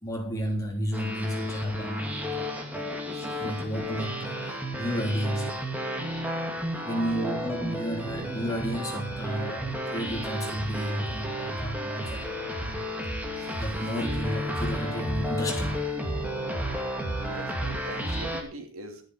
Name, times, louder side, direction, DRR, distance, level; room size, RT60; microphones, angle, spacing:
voice 1, 0.0-5.6 6.8-12.8 13.6-15.9, equal, 15° left, 3.4 m, -32 dB
sound 1, 0.9-18.4, equal, 10° right, 2.5 m, -32 dB
voice 2, 7.0-7.4 9.6-9.7 17.2-19.0, right 2 dB, 85° right, 2.8 m, -41 dB
13.0 x 10.0 x 5.0 m
head